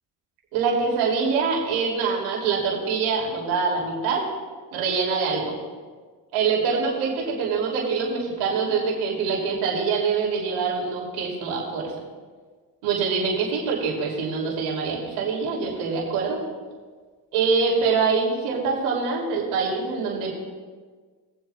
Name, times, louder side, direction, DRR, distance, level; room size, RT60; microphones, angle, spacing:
voice 1, 0.5-4.2 4.7-5.5 6.3-11.9 12.8-16.4 17.3-20.3, right 5 dB, 85° right, -3 dB, 3.0 m, -24 dB
20.5 x 7.8 x 2.4 m, 1.5 s
supercardioid pair, 80°, 48 cm